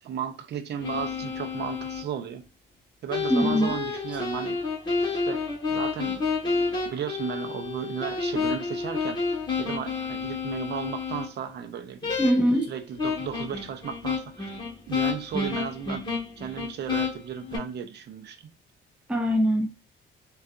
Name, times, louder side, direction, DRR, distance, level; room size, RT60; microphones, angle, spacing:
voice 1, 0.0-2.4 3.0-4.6 5.1-5.4 5.7-6.6 6.8-12.2 12.7-14.6 14.9-16.0 16.4-18.5, right 8 dB, 60° right, 0.5 m, -35 dB
sound 1, 0.8-2.0 3.1-11.3 12.0-12.6 13.0-17.6, left 4 dB, 25° left, 1.3 m, -30 dB
voice 2, 3.3-3.7 12.2-12.7 19.1-19.7, equal, 5° right, 0.4 m, -22 dB
3.7 x 2.3 x 2.4 m
cardioid pair, 90°, 20 cm